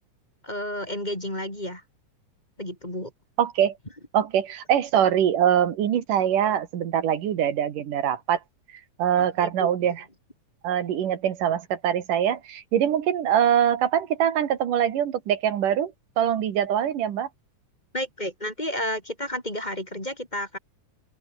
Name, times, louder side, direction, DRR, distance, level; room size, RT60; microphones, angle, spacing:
voice 1, 0.4-1.8 2.6-3.1 9.2-9.9 17.9-20.6, left 1 dB, 10° left, 5.3 m, -32 dB
voice 2, 3.4-3.7 4.1-8.4 9.0-10.0 10.6-17.3, right 9 dB, 75° right, 3.4 m, -23 dB
open air
omnidirectional pair, 3.8 m